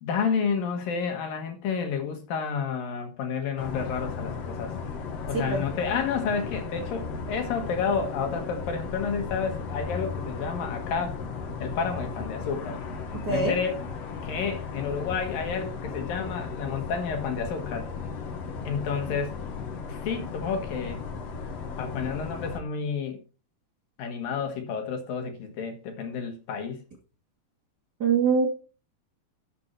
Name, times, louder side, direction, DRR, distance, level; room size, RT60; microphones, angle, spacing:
voice 1, 0.0-4.7 5.3-11.2 11.6-12.8 13.3-13.8 14.2-17.9 18.6-19.4 19.9-21.0 21.8-23.2 24.0-26.8, left 6 dB, 70° left, 3.2 m, -30 dB
sound 1, 3.6-22.6, left 5 dB, 50° left, 2.2 m, -36 dB
voice 2, 13.1-13.5 28.0-28.5, right 5 dB, 30° right, 2.3 m, -23 dB
13.5 x 6.8 x 4.4 m
omnidirectional pair, 4.3 m